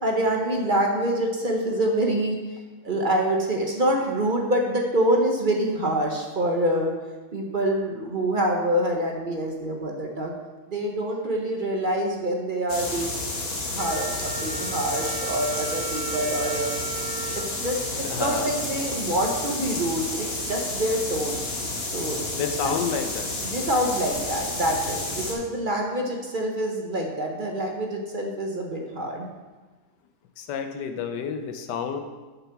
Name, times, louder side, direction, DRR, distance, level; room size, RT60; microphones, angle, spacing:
voice 1, 0.0-2.4 2.8-6.9 7.3-10.3 10.7-13.3 13.7-16.7 17.3-17.9 18.2-21.4 21.9-22.2 22.6-22.8 23.4-29.3, right 1 dB, 40° right, 1 dB, 0.8 m, -26 dB
sound 1, 12.7-25.3, left 2 dB, 40° left, 1.5 m, -31 dB
Wind instrument woodwind instrument, 13.8-18.6, right 8 dB, 85° right, 0.6 m, -36 dB
voice 2, 18.0-18.5 22.3-23.3 30.4-32.0, left 6 dB, 90° left, 6 dB, 1.3 m, -29 dB
6.7 x 6.0 x 5.8 m, 1.3 s
omnidirectional pair, 1.8 m